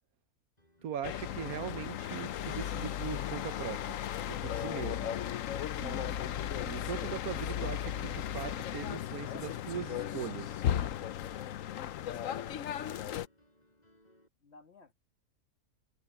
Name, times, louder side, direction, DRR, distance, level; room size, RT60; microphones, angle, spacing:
Piano, 0.6-14.3, left 1 dB, 25° left, 7.1 m, -66 dB
voice 1, 0.8-4.0 4.3-5.1 5.8-6.1 6.5-10.6, right 9 dB, 75° right, 1.4 m, -40 dB
sound 1, 1.0-13.3, left 10 dB, 65° left, 1.0 m, -36 dB
voice 2, 14.4-14.9, left 4 dB, 45° left, 2.4 m, -57 dB
omnidirectional pair, 1.6 m